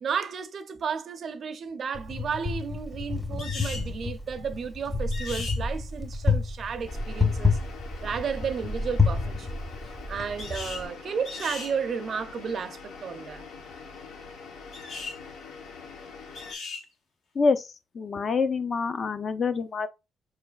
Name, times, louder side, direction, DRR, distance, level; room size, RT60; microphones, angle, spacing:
voice 1, 0.0-7.6 8.0-9.5 10.1-13.4, right 6 dB, 55° right, 0.5 m, -33 dB
Wind, 1.9-10.8, left 4 dB, 15° left, 0.8 m, -29 dB
sound 1, 3.4-3.9 5.1-5.6 10.4-10.9 11.3-11.7 14.7-15.2 16.3-16.9, left 4 dB, 75° left, 1.2 m, -37 dB
sound 2, 6.9-16.5, left 5 dB, 90° left, 0.9 m, -44 dB
voice 2, 17.3-17.7 17.9-19.9, left 4 dB, 45° left, 0.5 m, -26 dB
4.5 x 3.2 x 2.3 m
cardioid pair, 90°, 0 cm